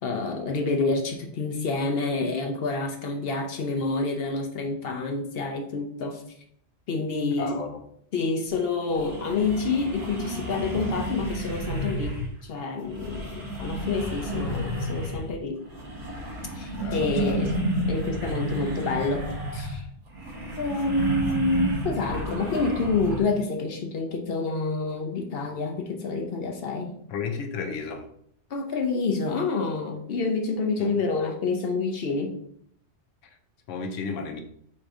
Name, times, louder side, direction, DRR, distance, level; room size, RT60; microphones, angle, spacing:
voice 1, 0.0-6.2 6.9-7.6 8.1-15.6 16.5-17.6 17.9-19.3 19.5-19.8 20.6-26.9 28.5-32.4, left 3 dB, 60° left, 3 dB, 0.8 m, -28 dB
voice 2, 7.4-7.8 16.8-17.4 27.1-28.1 30.8-30.9 33.7-34.4, left 5 dB, 80° left, 5 dB, 1.0 m, -33 dB
sound 1, 8.5-8.6 8.9-12.4 12.8-15.4 15.6-23.2, right 1 dB, 70° right, 1.5 m, -31 dB
4.2 x 2.6 x 4.6 m, 0.66 s
omnidirectional pair, 1.3 m